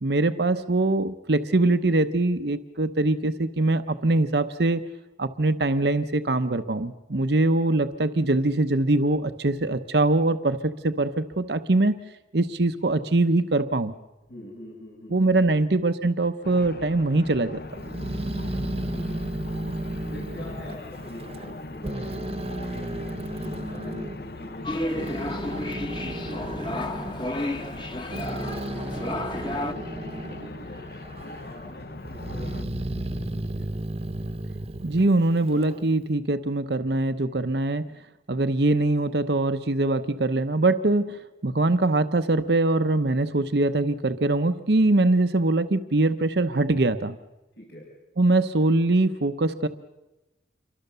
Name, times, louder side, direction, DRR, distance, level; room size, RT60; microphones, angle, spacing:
voice 1, 0.0-4.8 5.2-12.0 12.3-13.9 15.1-17.6 34.8-37.8 38.3-47.2 48.2-49.7, right 2 dB, 70° right, 10 dB, 0.9 m, -23 dB
voice 2, 14.3-15.2 15.5-15.6 18.9-19.1 20.1-27.5 28.1-30.9 31.2-33.8 47.6-47.9, left 1 dB, 75° left, -3 dB, 6.9 m, -44 dB
sound 1, 16.4-32.7, left 2 dB, 55° left, 0.8 m, -40 dB
Growling, 17.8-21.5 21.8-24.2 24.7-30.5 30.9-31.6 32.0-35.8, right 1 dB, 35° right, 1.0 m, -33 dB
sound 2, 24.6-29.7, left 1 dB, 25° left, 1.5 m, -32 dB
28.0 x 24.0 x 6.9 m, 1.0 s
head